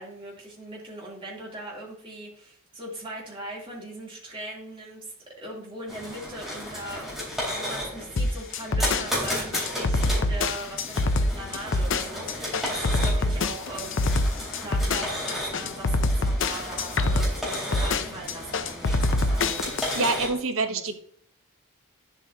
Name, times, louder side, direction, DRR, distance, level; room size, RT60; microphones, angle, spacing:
voice 1, 0.0-14.1 14.6-19.6 20.7-20.9, right 1 dB, 25° right, -4 dB, 3.1 m, -40 dB
sound 1, 5.9-20.3, left 1 dB, ahead, 3.6 m, -34 dB
sound 2, 8.2-20.1, left 2 dB, 60° left, 0.6 m, -25 dB
voice 2, 19.9-20.9, right 3 dB, 70° right, 8 dB, 0.9 m, -26 dB
10.5 x 7.7 x 2.9 m, 0.65 s
head